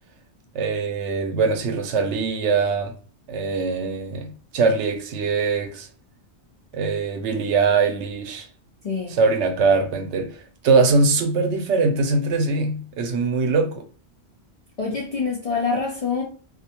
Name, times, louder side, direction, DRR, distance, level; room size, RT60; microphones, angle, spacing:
voice 1, 0.5-2.9 3.3-5.9 6.7-8.5 9.1-10.4 10.6-13.8, right 4 dB, 90° right, 0.9 m, -22 dB
voice 2, 8.8-9.2 14.8-16.2, left 4 dB, 60° left, 0.4 m, -25 dB
2.4 x 2.1 x 2.8 m
omnidirectional pair, 1.1 m